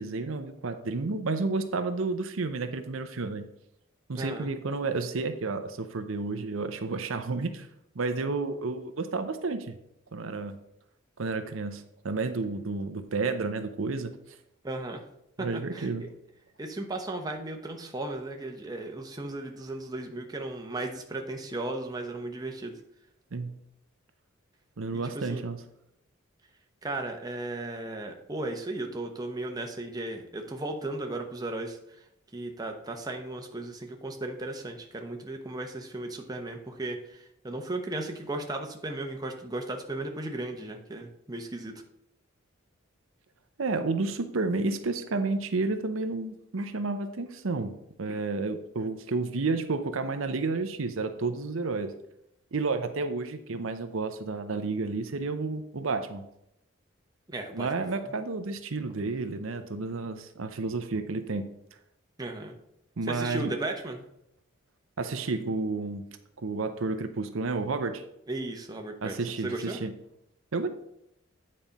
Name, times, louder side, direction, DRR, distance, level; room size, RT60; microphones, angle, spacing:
voice 1, 0.0-3.5 4.1-7.7 7.9-9.7 10.1-10.6 11.2-14.1 15.4-16.1 23.3-23.5 24.8-25.6 43.6-51.9 52.5-56.2 57.5-61.5 63.0-63.5 65.0-66.1 66.4-68.0 69.0-69.9 70.5-70.7, right 3 dB, 80° right, 8 dB, 0.7 m, -31 dB
voice 2, 4.1-4.5 14.6-15.0 15.4-15.5 15.7-16.1 16.6-22.8 25.1-25.4 26.8-31.8 32.3-41.8 57.3-57.7 58.0-58.1 62.2-62.6 63.1-64.0 68.3-69.2 69.4-69.8, right 2 dB, 20° right, 3 dB, 0.8 m, -35 dB
9.2 x 4.3 x 5.2 m, 0.78 s
head